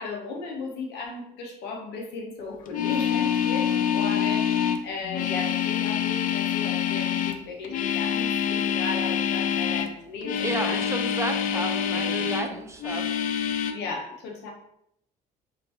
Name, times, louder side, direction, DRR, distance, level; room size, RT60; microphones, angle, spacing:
voice 1, 0.0-10.9 11.5-11.6 11.9-12.6 13.7-14.5, left 3 dB, 85° left, 0 dB, 1.0 m, -36 dB
sound 1, 2.7-9.9 10.2-12.5 12.8-13.7, left 8 dB, 55° left, 0.4 m, -26 dB
voice 2, 10.4-13.1, right 2 dB, 15° right, 4 dB, 0.5 m, -32 dB
4.3 x 2.6 x 2.9 m, 0.74 s
cardioid pair, 110°, 17 cm